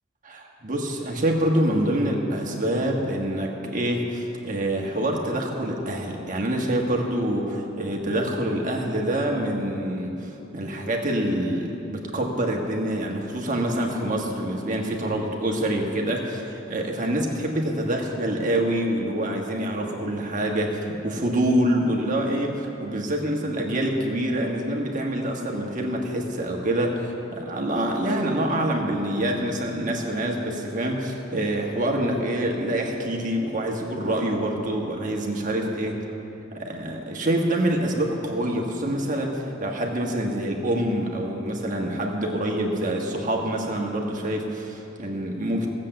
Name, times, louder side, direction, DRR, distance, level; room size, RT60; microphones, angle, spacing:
voice 1, 0.2-36.0 36.5-45.7, right 1 dB, 40° right, 1 dB, 1.5 m, -26 dB
16.0 x 7.6 x 7.8 m, 3.0 s
head